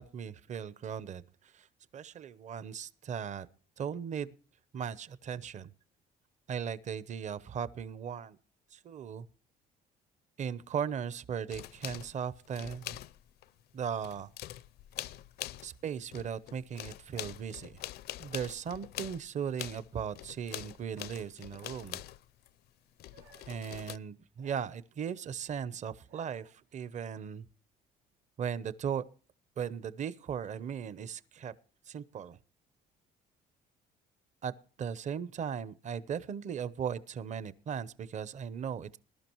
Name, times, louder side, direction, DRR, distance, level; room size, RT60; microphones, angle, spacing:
voice 1, 0.0-1.7 1.9-3.5 3.8-4.3 4.7-5.7 6.5-8.4 8.7-9.3 10.4-13.0 13.7-14.3 15.6-17.8 18.2-22.0 23.5-27.4 28.4-29.0 29.6-31.5 31.9-32.4 34.4-34.5 34.8-39.0, right 7 dB, 45° right, 17 dB, 0.8 m, -37 dB
sound 1, 11.5-13.5 13.8-15.8 16.1-22.5 23.0-24.0, left 14 dB, 70° left, 0.5 m, -44 dB
sound 2, 23.1-23.6 24.4-25.3 25.9-27.0, right 6 dB, 75° right, 2.2 m, -61 dB
20.5 x 12.0 x 3.0 m, 0.39 s
cardioid pair, 110°, 17 cm